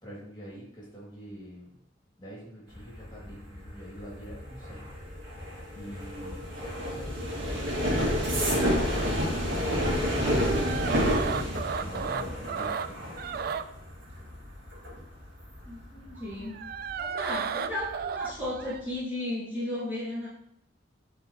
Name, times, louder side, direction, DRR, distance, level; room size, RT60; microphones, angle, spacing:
voice 1, 0.0-1.7 2.2-4.9 5.7-8.0 8.3-13.2, equal, 25° left, -5 dB, 2.4 m, -45 dB
sound 1, 2.7-17.3 17.7-18.1 18.4-18.8, equal, 80° right, 2.1 m, -30 dB
sound 2, 10.4-12.9 13.2-13.6 16.2-18.8, right 6 dB, 55° right, 0.3 m, -33 dB
voice 2, 15.7-16.6 17.0-20.3, left 1 dB, 10° right, -9 dB, 1.9 m, -34 dB
8.5 x 4.1 x 3.0 m, 0.75 s
head